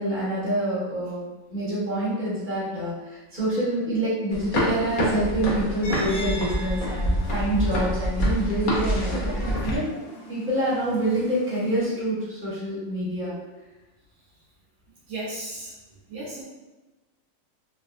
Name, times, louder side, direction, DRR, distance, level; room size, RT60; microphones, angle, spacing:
voice 1, 0.0-9.9 10.3-13.3, right 1 dB, 10° right, -11 dB, 1.2 m, -27 dB
sound 1, 4.3-9.8, equal, 45° left, 0.7 m, -26 dB
sound 2, 5.8-11.8, left 1 dB, 90° left, 1.2 m, -42 dB
voice 2, 15.1-15.7 16.1-16.4, right 2 dB, 80° right, -6 dB, 1.3 m, -34 dB
3.4 x 2.4 x 2.5 m, 1.1 s
omnidirectional pair, 1.4 m